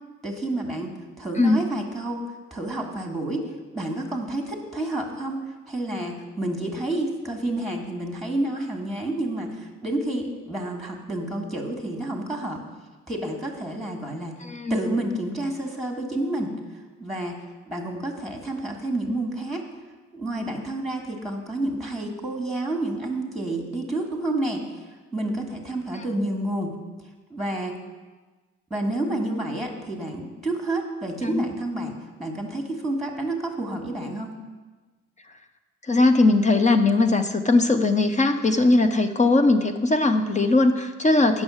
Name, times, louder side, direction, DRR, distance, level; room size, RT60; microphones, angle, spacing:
voice 1, 0.2-2.2 2.5-3.5 3.7-12.6 13.1-14.4 14.7-16.5 17.0-17.4 17.7-19.7 20.1-24.6 25.1-26.7 27.3-27.8 28.7-34.3, right 1 dB, ahead, 2 dB, 1.6 m, -29 dB
voice 2, 14.4-14.8 25.9-26.0 31.2-31.5 35.8-41.4, left 2 dB, 25° left, 7 dB, 0.6 m, -20 dB
8.8 x 6.3 x 6.3 m, 1.3 s
cardioid pair, 90°, 30 cm